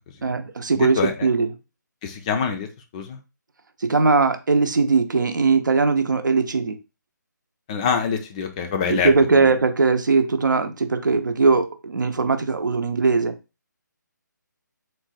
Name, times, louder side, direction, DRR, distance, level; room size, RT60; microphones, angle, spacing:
voice 1, 0.2-1.5 3.8-6.8 8.9-13.3, right 4 dB, 75° right, 0.6 m, -20 dB
voice 2, 0.7-1.3 2.0-2.7 2.9-3.2 7.7-9.5, left 6 dB, 20° left, 0.4 m, -25 dB
3.8 x 2.2 x 4.1 m
figure-of-eight pair, 150°, 10 cm